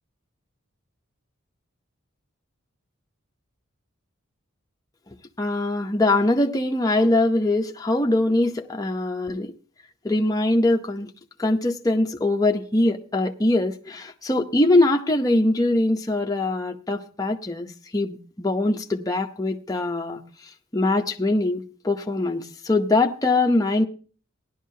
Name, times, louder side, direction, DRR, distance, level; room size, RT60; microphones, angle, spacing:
voice 1, 5.4-9.5 10.0-11.1 11.4-17.7 17.9-20.2 20.7-23.8, left 2 dB, 15° left, 0.7 m, -22 dB
17.5 x 11.0 x 2.7 m
head